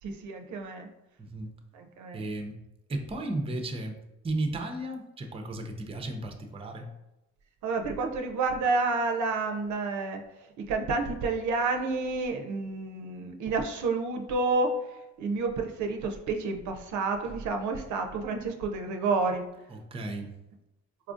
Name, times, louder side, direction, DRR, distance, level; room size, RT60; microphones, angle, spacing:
voice 1, 0.0-0.9 1.8-2.2 7.6-10.2 10.7-14.8 15.2-19.4, right 3 dB, 75° right, 4 dB, 0.5 m, -29 dB
voice 2, 1.2-1.5 2.1-2.6 2.9-4.0 4.2-6.9 17.2-17.3 19.7-20.3, right 2 dB, 20° right, 4 dB, 0.5 m, -34 dB
4.4 x 2.4 x 2.4 m, 0.95 s
cardioid pair, 90°, 30 cm